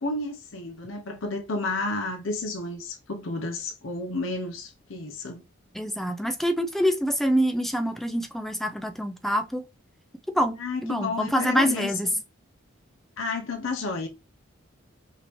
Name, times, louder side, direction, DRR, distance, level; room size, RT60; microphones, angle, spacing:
voice 1, 0.0-5.4 10.6-11.9 13.2-14.1, left 3 dB, 75° left, 0.8 m, -31 dB
voice 2, 5.7-9.6 10.3-10.6 10.8-12.1, equal, ahead, 0.4 m, -26 dB
5.1 x 2.8 x 3.0 m
head